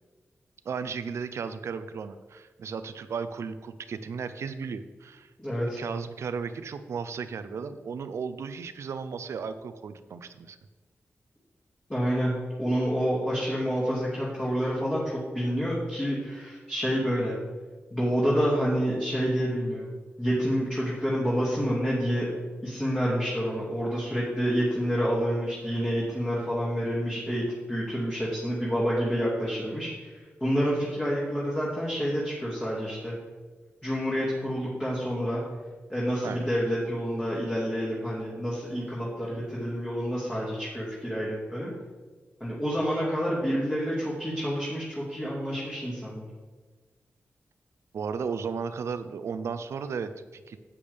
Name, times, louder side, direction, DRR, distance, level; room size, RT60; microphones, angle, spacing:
voice 1, 0.6-5.3 5.8-10.6 36.2-36.5 47.9-50.6, right 5 dB, 85° right, 11 dB, 0.6 m, -35 dB
voice 2, 5.4-5.8 11.9-12.3 12.6-17.4 17.9-19.9 20.2-22.3 22.6-33.1 33.8-35.4 35.9-41.7 42.4-46.3, equal, 15° left, -7 dB, 2.3 m, -28 dB
10.5 x 8.4 x 3.5 m, 1.3 s
wide cardioid pair, 115°, 5 cm